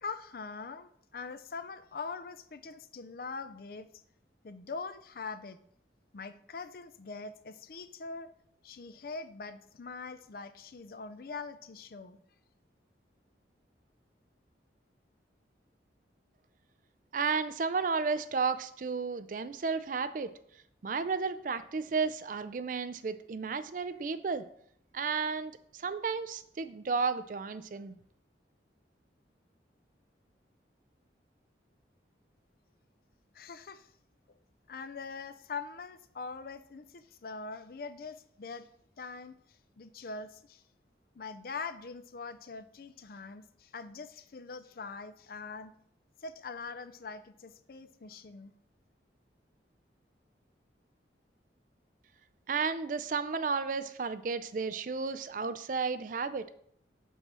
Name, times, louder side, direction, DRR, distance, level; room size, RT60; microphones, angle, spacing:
voice 1, 0.0-3.9 4.4-5.6 6.1-8.3 8.6-12.2 33.3-33.9 34.7-38.7 39.0-40.6 41.1-45.7 46.2-48.5, left 4 dB, 55° left, 12 dB, 0.5 m, -43 dB
voice 2, 17.1-20.3 20.8-24.4 24.9-28.0 52.5-56.5, right 5 dB, 45° right, 12 dB, 0.4 m, -33 dB
5.5 x 4.3 x 6.1 m, 0.66 s
head